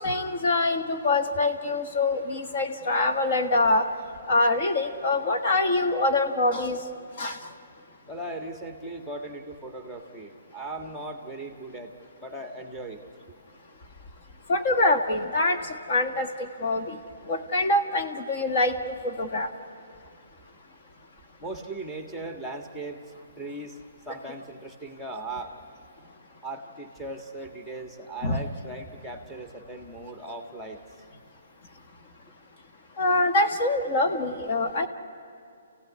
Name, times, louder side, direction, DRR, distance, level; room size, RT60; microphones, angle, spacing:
voice 1, 0.0-3.8 4.3-6.8 7.2-7.4 14.5-15.6 15.9-16.3 16.6-17.0 17.3-18.7 19.0-19.5 28.2-28.4 33.0-34.9, left 2 dB, 45° left, 4 dB, 1.5 m, -24 dB
voice 2, 8.1-11.9 12.2-13.0 21.4-23.0 23.4-23.8 24.0-25.5 26.4-30.8, right 2 dB, ahead, 4 dB, 1.7 m, -38 dB
29.0 x 16.0 x 9.7 m, 2.4 s
hypercardioid pair, 150°, 0 cm